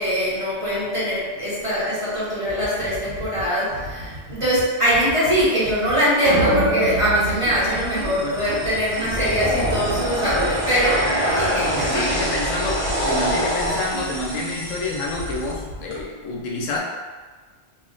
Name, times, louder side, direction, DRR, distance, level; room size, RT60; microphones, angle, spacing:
voice 1, 0.0-12.1, equal, 30° right, -10 dB, 0.7 m, -22 dB
sound 1, 2.4-16.0, equal, 55° right, 1.1 m, -35 dB
sound 2, 6.3-8.7, right 4 dB, 75° right, 0.9 m, -27 dB
sound 3, 7.6-15.5, equal, 20° left, 1.0 m, -26 dB
voice 2, 11.7-16.8, left 2 dB, 85° left, -2 dB, 0.9 m, -28 dB
2.4 x 2.0 x 3.8 m, 1.4 s
omnidirectional pair, 1.3 m